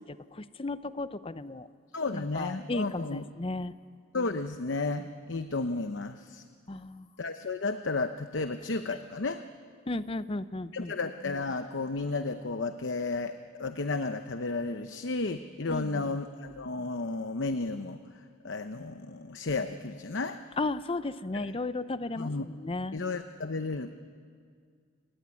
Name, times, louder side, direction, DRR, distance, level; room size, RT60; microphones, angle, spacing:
voice 1, 0.1-1.7 2.1-3.7 6.7-7.1 9.9-10.9 15.7-16.1 20.6-22.9, left 2 dB, 30° left, 14 dB, 0.6 m, -34 dB
voice 2, 1.9-3.2 4.1-6.4 7.2-9.4 10.7-18.0 18.4-20.4 21.3-21.5 22.2-22.5 22.9-23.9, left 3 dB, 70° left, 9 dB, 0.9 m, -33 dB
28.5 x 18.0 x 9.7 m, 2.1 s
head